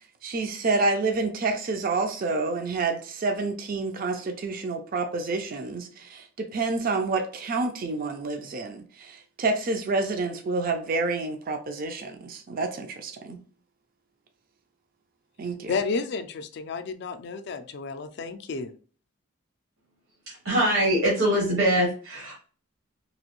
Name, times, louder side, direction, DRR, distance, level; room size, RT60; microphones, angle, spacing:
voice 1, 0.2-13.4 15.4-15.7, right 3 dB, 40° right, 5 dB, 0.4 m, -28 dB
voice 2, 15.7-18.7, left 4 dB, 50° left, 10 dB, 0.3 m, -31 dB
voice 3, 20.3-22.4, right 1 dB, 65° right, -4 dB, 0.9 m, -23 dB
2.9 x 2.6 x 2.9 m, 0.41 s
head